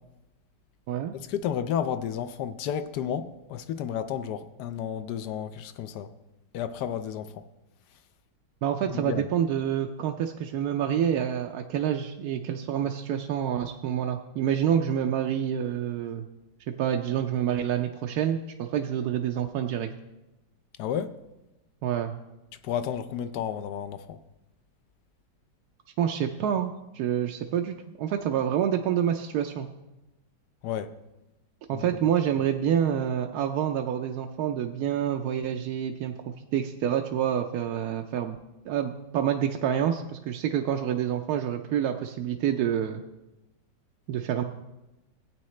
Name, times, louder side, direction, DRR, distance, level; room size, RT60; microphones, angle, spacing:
voice 1, 1.1-6.1 6.5-7.4 8.9-9.3 20.8-21.2 22.6-24.2 30.6-30.9 31.7-31.9, left 9 dB, 75° left, 1.1 m, -32 dB
voice 2, 8.6-16.2 16.8-19.9 21.8-22.1 26.0-29.7 31.7-38.4 38.7-43.0 44.1-44.4, right 9 dB, 70° right, 1.0 m, -27 dB
15.5 x 8.7 x 3.2 m
omnidirectional pair, 1.9 m